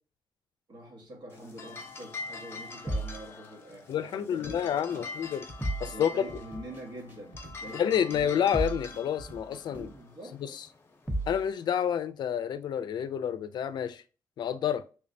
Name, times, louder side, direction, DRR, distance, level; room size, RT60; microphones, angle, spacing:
voice 1, 0.7-5.1 5.9-9.1 9.7-10.4, right 1 dB, 70° right, 1.2 m, -46 dB
sound 1, 1.3-11.7, left 4 dB, 35° left, 0.7 m, -45 dB
sound 2, 2.9-3.2 5.6-6.0 8.5-8.9 11.1-11.4, right 1 dB, 5° right, 0.5 m, -31 dB
voice 2, 3.9-5.4 5.8-6.1 7.7-9.9 10.4-10.7 11.3-14.0 14.4-14.8, left 9 dB, 85° left, 0.4 m, -29 dB
sound 3, 4.4-10.0, right 1 dB, 30° right, 1.1 m, -49 dB
3.3 x 3.2 x 2.5 m
wide cardioid pair, 165°, 7 cm